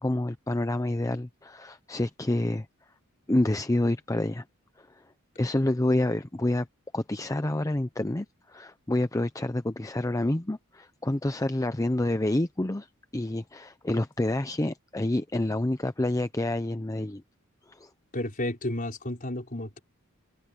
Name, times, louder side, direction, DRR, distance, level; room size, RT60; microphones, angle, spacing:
voice 1, 0.0-2.7 3.3-4.4 4.8-5.0 5.4-6.7 6.9-12.9 13.1-17.2 17.7-17.9, left 1 dB, 15° left, 0.6 m, -28 dB
voice 2, 18.1-19.8, left 1 dB, 40° left, 4.9 m, -32 dB
head